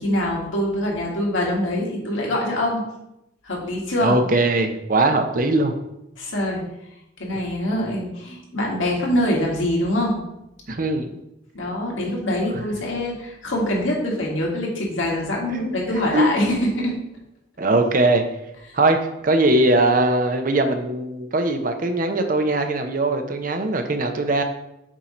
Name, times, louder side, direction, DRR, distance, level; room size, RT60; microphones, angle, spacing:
voice 1, 0.0-2.8 3.4-4.2 6.2-6.6 7.2-10.2 11.5-17.0, left 1 dB, 90° left, -2 dB, 1.6 m, -24 dB
voice 2, 4.0-5.7 10.7-11.2 15.5-15.8 16.1-16.5 17.6-18.2 18.7-24.4, right 2 dB, 45° right, 6 dB, 0.6 m, -20 dB
7.3 x 2.8 x 5.0 m, 0.85 s
head